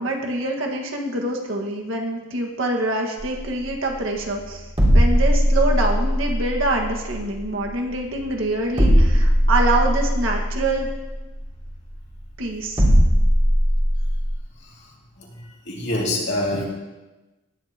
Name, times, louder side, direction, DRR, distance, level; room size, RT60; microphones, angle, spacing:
voice 1, 0.0-4.7 4.9-10.9 12.4-12.8, right 2 dB, 60° right, 1 dB, 1.8 m, -25 dB
sound 1, 3.2-14.4, equal, 25° right, 2.8 m, -20 dB
voice 2, 15.7-16.6, left 1 dB, 50° left, -3 dB, 2.7 m, -24 dB
18.5 x 10.5 x 3.0 m, 1.1 s
head